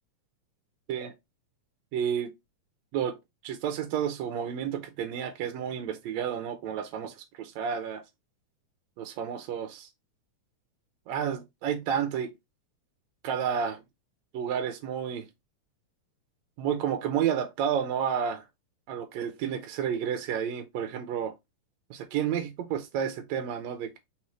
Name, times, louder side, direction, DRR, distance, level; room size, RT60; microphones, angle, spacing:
voice 1, 1.9-2.3 2.9-3.2 3.4-8.0 9.0-9.9 11.1-12.3 13.2-13.8 14.3-15.3 16.6-18.4 18.9-21.3 21.9-24.0, right 8 dB, 75° right, 1.8 m, -31 dB
4.3 x 4.0 x 3.0 m
omnidirectional pair, 3.5 m